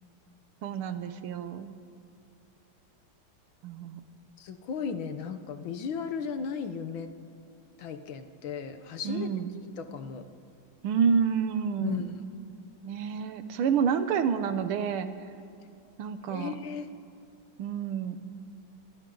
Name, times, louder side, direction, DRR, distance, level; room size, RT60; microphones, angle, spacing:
voice 1, 0.6-1.7 3.6-4.0 9.1-9.5 10.8-12.0 12.8-15.1 16.0-16.5 17.6-18.2, right 7 dB, 90° right, 9 dB, 1.8 m, -28 dB
voice 2, 4.4-7.1 7.8-9.5 9.8-10.2 11.8-12.2 16.3-16.9, left 6 dB, 70° left, 9 dB, 1.8 m, -35 dB
27.0 x 27.0 x 3.9 m, 2.6 s
omnidirectional pair, 2.3 m